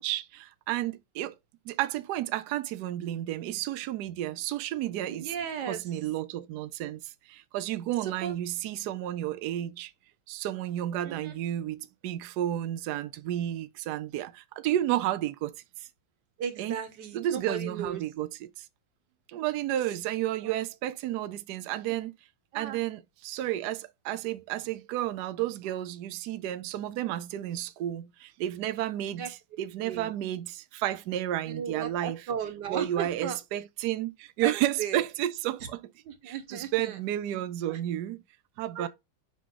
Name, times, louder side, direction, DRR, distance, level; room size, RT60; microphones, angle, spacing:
voice 1, 0.0-1.3 1.7-5.3 5.6-9.9 10.3-15.5 15.8-15.9 16.6-16.8 17.1-18.7 19.3-22.1 22.5-32.2 32.7-35.8 36.2-38.2 38.6-38.9, right 13 dB, 85° right, 0.8 m, -32 dB
voice 2, 5.1-5.8 8.0-8.4 11.0-11.4 14.7-14.8 16.4-18.0 20.4-20.5 21.9-22.0 22.5-22.8 29.1-29.3 29.8-30.1 31.4-33.4 34.4-34.5 34.8-35.0 36.0-37.0 37.7-37.8 38.7-38.9, right 8 dB, 60° right, 1.6 m, -35 dB
5.3 x 5.0 x 3.7 m
omnidirectional pair, 2.4 m